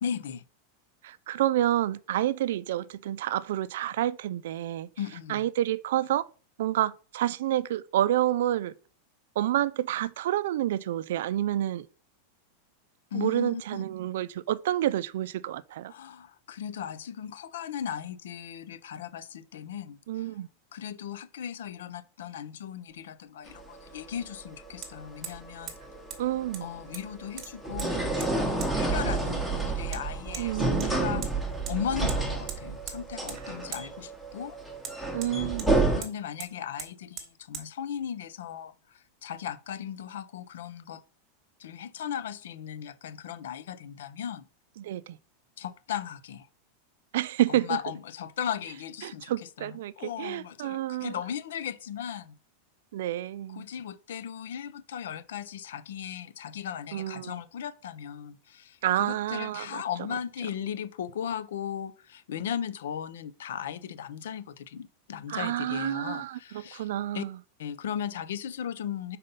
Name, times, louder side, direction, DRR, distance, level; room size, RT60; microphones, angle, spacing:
voice 1, 0.0-0.4 5.0-5.5 13.1-13.8 15.9-20.3 20.7-25.7 26.6-31.3 31.7-34.6 35.9-38.7 39.2-41.0 41.6-44.5 45.6-46.5 47.5-52.3 53.5-66.9 67.1-67.3 67.6-69.2, left 9 dB, 90° left, 0.6 m, -37 dB
voice 2, 1.0-4.9 5.3-6.3 6.6-8.7 9.4-11.9 13.1-15.9 20.1-20.5 26.2-26.7 30.4-31.3 35.1-35.8 44.8-45.2 47.1-47.8 49.0-51.1 52.9-53.7 56.9-57.4 58.8-59.8 65.3-67.4, right 13 dB, 65° right, 0.3 m, -29 dB
Hammer, 22.9-23.0 24.8-24.9 25.2-25.4 25.7-25.8 26.1-26.2 26.5-27.1 27.4-27.9 28.2-28.3 28.6-28.7 29.9-30.0 30.3-30.5 30.8-31.3 31.7-31.8 32.1-32.2 32.5-33.0 33.3-33.4 33.7-33.8 34.8-35.7 36.0-36.1 36.4-36.5 36.8-36.9 37.2-37.3 37.5-37.7, right 7 dB, 25° right, 1.1 m, -40 dB
sound 1, 23.5-36.0, right 3 dB, ahead, 0.9 m, -30 dB
5.2 x 4.1 x 5.5 m
supercardioid pair, 175°, 0 cm